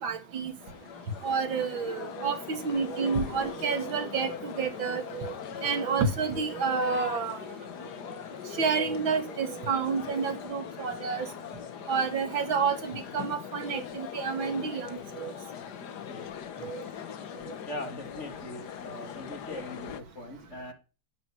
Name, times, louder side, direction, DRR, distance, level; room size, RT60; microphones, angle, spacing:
voice 1, 0.0-0.5 1.2-5.3 5.6-7.4 8.6-11.3 11.9-14.9 15.2-15.3 16.6-16.8, right 5 dB, 80° right, 9 dB, 2.8 m, -29 dB
sound 1, 0.6-20.0, left 9 dB, 60° left, 1.5 m, -41 dB
voice 2, 17.7-20.7, left 1 dB, 35° left, 7 dB, 2.6 m, -41 dB
11.5 x 9.2 x 9.9 m, 0.34 s
omnidirectional pair, 2.1 m